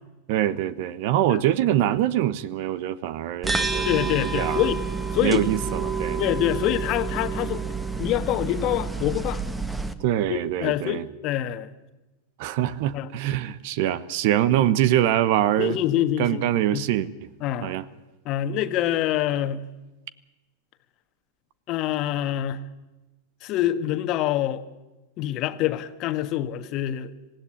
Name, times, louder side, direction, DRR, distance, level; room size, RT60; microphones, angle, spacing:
voice 1, 0.3-4.7 5.2-6.2 10.0-11.0 12.4-15.8 16.2-17.1 17.6-17.9, right 12 dB, 55° right, 17 dB, 1.1 m, -24 dB
sound 1, 3.4-9.9, right 4 dB, 10° right, 1.6 m, -29 dB
voice 2, 3.8-4.8 5.1-5.4 6.2-7.6 8.0-9.4 10.3-11.7 12.9-13.1 15.6-16.5 16.7-16.9 17.4-17.7 18.2-19.6 21.7-22.6 23.4-24.6 25.2-27.1, left 12 dB, 45° left, 10 dB, 1.5 m, -25 dB
26.0 x 16.0 x 9.9 m, 1.1 s
figure-of-eight pair, 90°, 0 cm